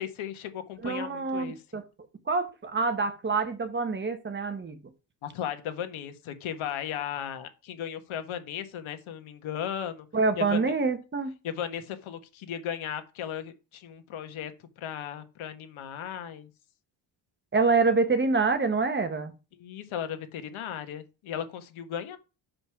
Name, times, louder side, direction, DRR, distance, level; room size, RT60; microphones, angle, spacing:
voice 1, 0.0-1.6 5.2-10.1 10.3-10.7 11.4-14.5 14.8-16.5 19.6-22.2, left 9 dB, 75° left, 1.5 m, -36 dB
voice 2, 0.8-1.8 2.3-4.8 10.1-11.3 17.5-19.3, right 4 dB, 25° right, 1.2 m, -26 dB
6.9 x 5.2 x 5.7 m
cardioid pair, 150°, 49 cm